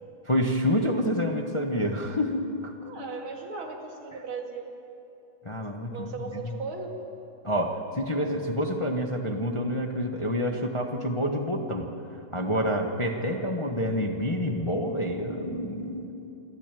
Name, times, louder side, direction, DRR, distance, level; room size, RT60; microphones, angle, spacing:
voice 1, 0.3-2.7 5.4-6.6 7.4-11.9 12.3-16.1, equal, 20° left, 3 dB, 0.9 m, -28 dB
voice 2, 2.9-4.8 5.9-7.0, right 4 dB, 85° right, 2 dB, 3.0 m, -37 dB
28.0 x 12.0 x 9.1 m, 2.9 s
omnidirectional pair, 2.2 m